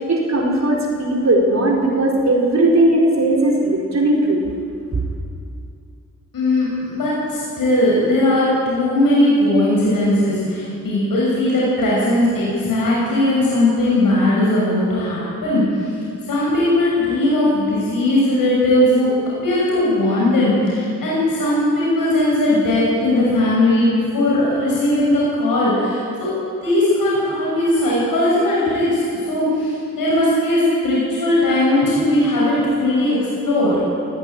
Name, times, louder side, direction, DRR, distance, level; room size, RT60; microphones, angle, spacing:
voice 1, 0.0-4.4 4.9-5.0, right 1 dB, 55° right, -1 dB, 4.3 m, -17 dB
voice 2, 6.3-15.9 16.3-19.1 19.4-26.3 26.6-29.0 29.3-33.2 33.4-33.8, left 1 dB, 85° left, -6 dB, 6.7 m, -18 dB
18.0 x 16.5 x 9.2 m, 2.4 s
cardioid pair, 60°, 33 cm